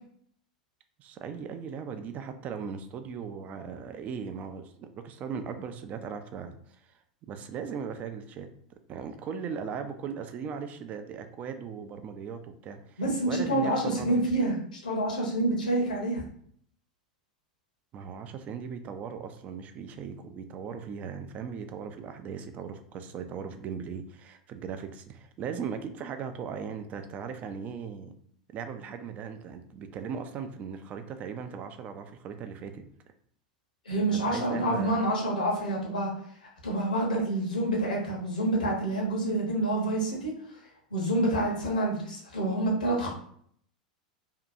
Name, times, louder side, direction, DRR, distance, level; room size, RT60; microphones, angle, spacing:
voice 1, 1.0-6.9 7.2-8.5 8.9-14.1 17.9-28.1 28.5-32.8 34.1-35.0, right 6 dB, 35° right, 8 dB, 0.4 m, -38 dB
voice 2, 13.0-16.2 33.8-36.1 36.6-40.6 40.9-43.1, right 1 dB, 85° left, -2 dB, 0.9 m, -28 dB
2.7 x 2.2 x 2.5 m, 0.65 s
hypercardioid pair, 95°, 4 cm